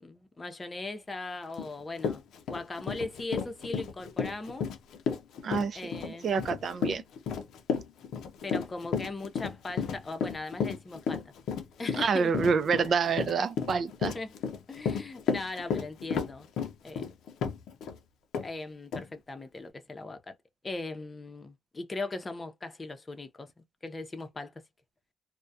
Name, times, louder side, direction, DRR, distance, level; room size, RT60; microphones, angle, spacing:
voice 1, 0.0-2.2 2.5-4.7 5.7-6.3 8.4-11.2 11.8-12.3 14.0-14.3 14.7-16.5 16.8-17.0 18.4-20.3 20.6-23.5 23.8-24.5, left 2 dB, 25° left, 0.6 m, -39 dB
Run, 1.6-1.7 2.0-18.0 18.3-18.5 18.9-19.0, left 6 dB, 80° left, 0.5 m, -33 dB
voice 2, 5.4-7.0 12.0-14.1, right 5 dB, 50° right, 0.4 m, -28 dB
2.3 x 2.1 x 2.6 m
cardioid pair, 90°, 0 cm